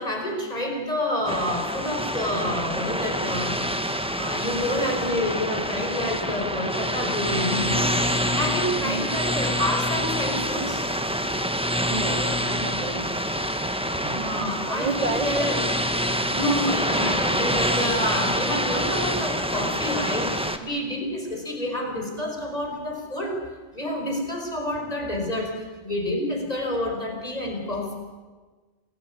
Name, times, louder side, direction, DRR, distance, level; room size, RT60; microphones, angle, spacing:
voice 1, 0.0-7.9 8.3-10.8 14.0-15.6 16.3-23.4 23.7-25.5 25.8-27.9, left 1 dB, 35° left, 1 dB, 5.5 m, -28 dB
sound 1, 1.3-20.6, equal, 5° right, 1.6 m, -26 dB
voice 2, 8.8-9.1 11.8-13.1 14.7-15.3, right 3 dB, 35° right, 6 dB, 2.5 m, -30 dB
28.0 x 19.5 x 9.7 m, 1.4 s
omnidirectional pair, 1.2 m